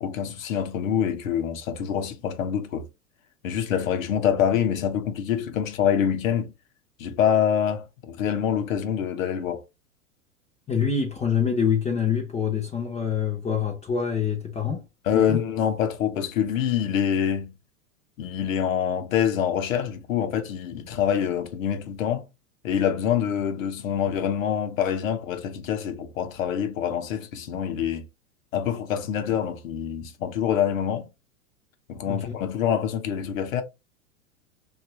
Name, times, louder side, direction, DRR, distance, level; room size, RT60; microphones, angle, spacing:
voice 1, 0.0-2.9 3.4-6.5 7.0-9.6 15.1-17.5 18.2-22.3 22.6-28.1 28.5-31.1 31.9-33.6, left 8 dB, 65° left, 0.8 m, -25 dB
voice 2, 10.7-14.8 15.1-15.4 32.1-32.4, left 7 dB, 15° left, 0.6 m, -25 dB
2.9 x 2.4 x 2.8 m
hypercardioid pair, 100°, 43 cm